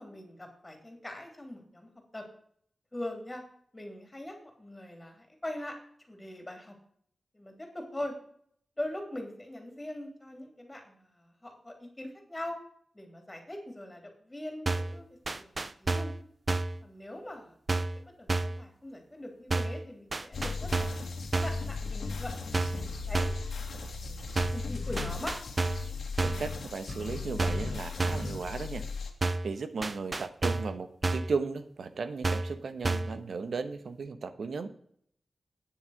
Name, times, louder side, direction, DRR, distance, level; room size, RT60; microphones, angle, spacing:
voice 1, 0.0-2.2 2.9-3.4 3.7-5.7 6.1-6.7 7.3-8.1 8.8-12.5 12.9-16.1 16.8-20.9 21.3-22.3 22.8-25.3, left 1 dB, 15° left, 3 dB, 3.1 m, -42 dB
sound 1, 14.7-15.0 15.3-16.2 16.5-16.8 17.7-18.0 18.3-18.6 19.5-19.8 20.1-21.0 21.3-21.6 22.5-22.9 23.1-23.5 24.4-24.7 25.0-25.9 26.2-26.5 27.4-27.7 28.0-28.3 29.2-29.5 29.8-30.7 31.0-31.4 32.2-32.6 32.8-33.2, right 2 dB, 30° right, 0.6 m, -30 dB
sound 2, 20.3-29.1, left 4 dB, 85° left, 2.1 m, -37 dB
voice 2, 26.2-28.8 29.4-34.7, right 4 dB, 70° right, 10 dB, 1.1 m, -35 dB
9.6 x 7.4 x 6.5 m, 0.64 s
wide cardioid pair, 150°, 0 cm